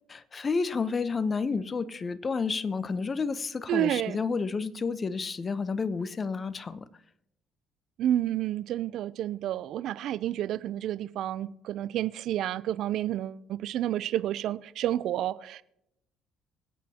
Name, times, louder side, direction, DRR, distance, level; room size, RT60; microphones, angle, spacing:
voice 1, 0.1-6.9, left 4 dB, 35° left, 0.9 m, -30 dB
voice 2, 3.7-4.2 8.0-15.6, right 12 dB, 70° right, 0.5 m, -30 dB
24.5 x 8.5 x 2.9 m
supercardioid pair, 70°, 0 cm